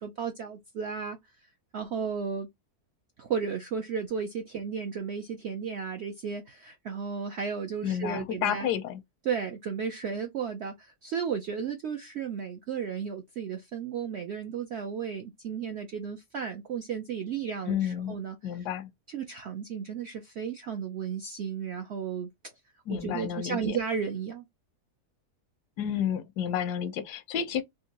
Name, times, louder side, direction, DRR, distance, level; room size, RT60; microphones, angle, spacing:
voice 1, 0.0-2.5 3.2-8.7 9.2-18.7 19.1-22.3 22.9-24.5, right 6 dB, 75° right, 0.6 m, -34 dB
voice 2, 7.8-9.0 17.7-18.1 18.4-18.9 22.9-23.8 25.8-27.6, left 9 dB, 85° left, 1.2 m, -30 dB
3.7 x 2.4 x 2.8 m
omnidirectional pair, 1.7 m